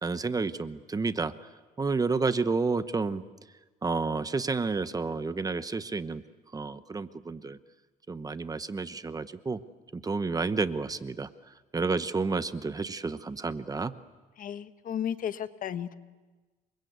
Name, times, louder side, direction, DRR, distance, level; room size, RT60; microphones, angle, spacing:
voice 1, 0.0-1.3 1.8-3.2 3.8-6.2 6.5-7.6 8.1-9.6 9.9-11.3 11.7-13.9, right 4 dB, 20° right, 13 dB, 1.0 m, -30 dB
voice 2, 14.4-15.9, left 9 dB, 55° left, 11 dB, 1.3 m, -34 dB
29.0 x 24.0 x 8.1 m, 1.3 s
cardioid pair, 110°, 17 cm